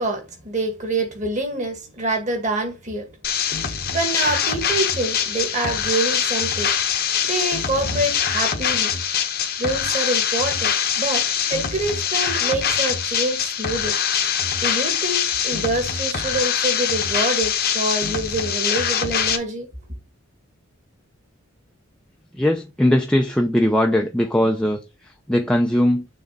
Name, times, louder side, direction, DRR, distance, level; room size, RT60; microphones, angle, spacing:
voice 1, 0.0-3.1 3.4-8.9 9.6-11.2 11.5-14.0 14.6-19.7, right 2 dB, 35° right, 2.0 m, -26 dB
sound 1, 3.2-19.4, left 8 dB, 45° left, 1.0 m, -23 dB
voice 2, 22.3-26.1, left 1 dB, 5° left, 0.6 m, -20 dB
6.7 x 3.5 x 5.2 m
head